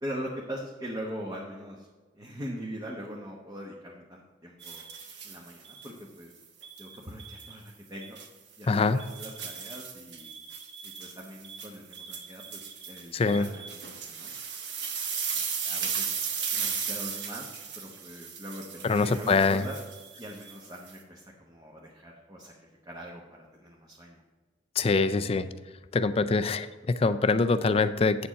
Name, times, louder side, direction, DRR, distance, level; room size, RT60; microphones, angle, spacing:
voice 1, 0.0-1.9 2.1-4.8 5.2-6.3 6.8-8.2 8.6-10.4 10.8-14.3 15.3-19.8 20.2-22.5 22.8-24.2, equal, 20° right, -2 dB, 1.0 m, -42 dB
sound 1, 4.6-5.9 6.6-7.5 8.0-8.3 8.7-20.9, right 6 dB, 70° right, 1.1 m, -36 dB
voice 2, 8.7-9.0 13.1-13.5 18.8-19.6 24.8-25.5 25.9-28.3, left 4 dB, 35° left, 12 dB, 0.4 m, -24 dB
8.7 x 7.0 x 4.1 m, 1.3 s
head